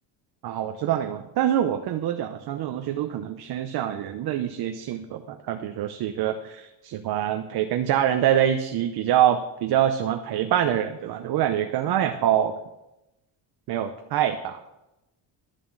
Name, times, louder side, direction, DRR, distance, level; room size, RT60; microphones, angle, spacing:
voice 1, 0.4-12.5 13.7-14.6, right 10 dB, 55° right, 6 dB, 0.7 m, -25 dB
11.0 x 7.1 x 6.3 m, 0.95 s
cardioid pair, 160°, 46 cm